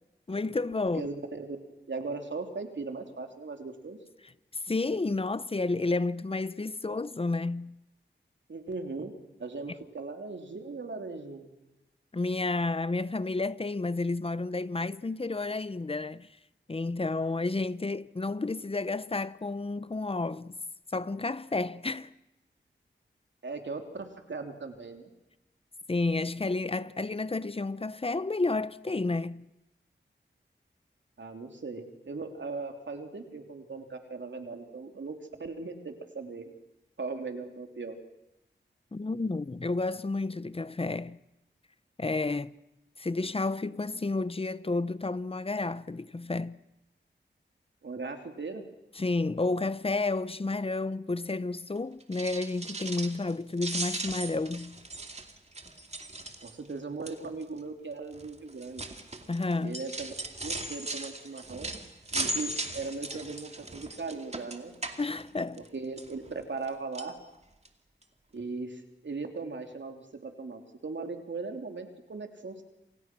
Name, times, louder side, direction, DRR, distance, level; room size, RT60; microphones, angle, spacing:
voice 1, 0.3-1.0 4.7-7.8 12.1-16.3 16.7-20.5 20.9-22.1 25.9-29.5 38.9-41.2 42.0-42.5 43.0-46.6 49.0-54.8 59.3-59.8 65.0-65.6, left 3 dB, 30° left, 0.8 m, -31 dB
voice 2, 0.9-1.6 1.9-4.0 8.5-9.1 9.4-11.5 23.4-25.1 31.2-36.5 37.0-37.9 47.8-48.6 56.4-58.8 59.6-60.1 60.4-61.7 62.1-64.8 65.6-67.2 68.3-72.6, right 3 dB, 70° right, 3.2 m, -38 dB
sound 1, 52.0-53.3 53.6-56.7 57.1-57.4 58.1-65.7 66.0-66.7 66.9-67.1 67.7-67.8 68.0-68.1, right 2 dB, 35° right, 2.5 m, -38 dB
28.0 x 27.5 x 6.2 m
wide cardioid pair, 75°, 19 cm